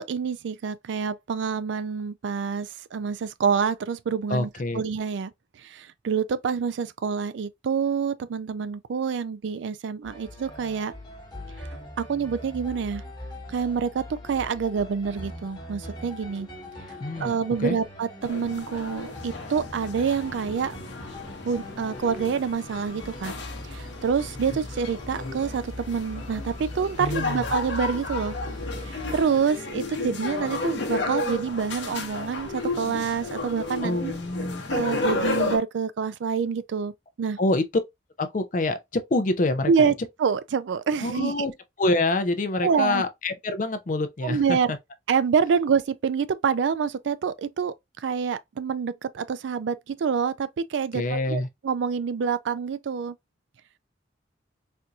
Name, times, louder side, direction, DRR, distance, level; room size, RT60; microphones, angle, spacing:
voice 1, 0.0-4.5 4.7-5.3 5.6-10.9 12.0-13.0 13.5-16.5 17.2-20.8 21.4-23.3 23.7-28.4 28.9-34.1 34.7-36.9 37.2-37.4 39.7-39.9 40.2-41.5 42.6-43.0 44.2-44.7 45.1-47.7 48.0-53.1, right 6 dB, 75° right, 0.4 m, -27 dB
voice 2, 4.3-4.8 17.0-17.3 17.6-17.7 27.0-27.4 33.8-34.8 37.4-37.6 38.2-39.9 41.0-41.5 41.8-44.8 50.9-51.5, left 2 dB, 45° left, 0.5 m, -26 dB
sound 1, 10.0-29.2, left 1 dB, 20° left, 1.3 m, -41 dB
sound 2, 18.2-35.6, left 3 dB, 70° left, 0.8 m, -33 dB
4.3 x 2.6 x 2.3 m
head